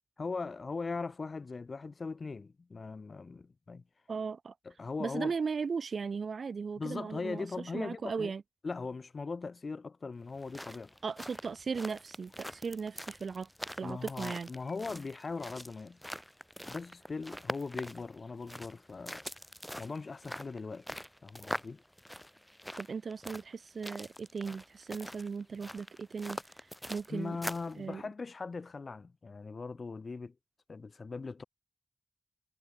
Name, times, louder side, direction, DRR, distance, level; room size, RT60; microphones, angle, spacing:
voice 1, 0.2-3.8 4.6-5.4 6.8-8.3 8.6-10.9 13.8-16.0 16.7-19.2 19.8-21.8 27.1-30.3 30.7-31.4, left 4 dB, 60° left, 0.8 m, -40 dB
voice 2, 4.1-4.5 5.0-7.5 7.7-8.4 11.0-14.5 22.8-27.4 27.8-28.0, right 5 dB, 90° right, 1.2 m, -37 dB
sound 1, 10.3-27.8, equal, 5° left, 3.0 m, -44 dB
wide cardioid pair, 90°, 0 cm